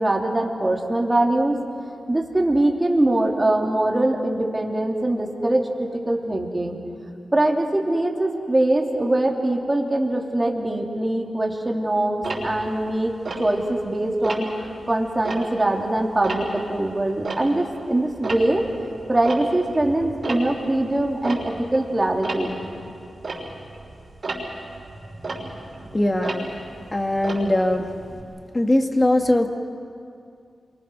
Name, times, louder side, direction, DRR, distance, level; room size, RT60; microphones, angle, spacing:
voice 1, 0.0-1.6 2.1-6.8 7.3-18.7 19.1-22.6, right 1 dB, 20° right, 0 dB, 3.1 m, -22 dB
Tick-tock, 12.2-13.9 14.2-14.7 15.1-17.8 18.1-28.2, right 2 dB, 55° right, 6.0 m, -34 dB
voice 2, 25.9-27.9 28.5-29.5, left 1 dB, 20° left, 5 dB, 2.0 m, -21 dB
27.5 x 24.5 x 6.4 m, 2.4 s
cardioid pair, 75°, 0 cm